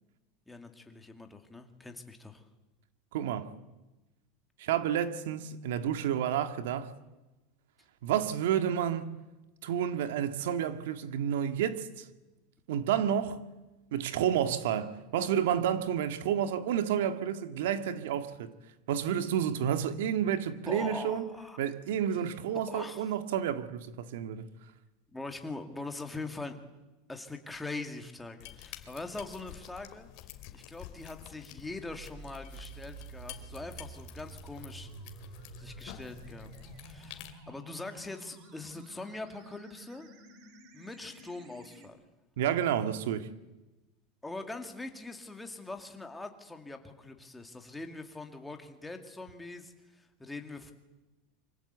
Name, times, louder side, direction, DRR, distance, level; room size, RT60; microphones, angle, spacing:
voice 1, 0.5-2.4 20.7-21.6 22.5-23.0 25.1-26.6 27.1-30.1 30.5-34.9 35.6-36.5 36.8-40.1 40.7-42.0 44.2-50.7, left 3 dB, 5° left, 2.2 m, -42 dB
voice 2, 3.1-3.5 4.6-6.9 8.0-9.2 9.6-12.1 12.7-13.5 13.9-18.5 18.9-21.3 21.6-24.5 42.4-43.3, right 9 dB, 80° right, 2.0 m, -30 dB
sound 1, 28.4-37.4, left 13 dB, 45° left, 2.7 m, -49 dB
sound 2, 31.9-41.9, right 4 dB, 45° right, 3.6 m, -50 dB
27.0 x 25.0 x 8.2 m
supercardioid pair, 165°, 0 cm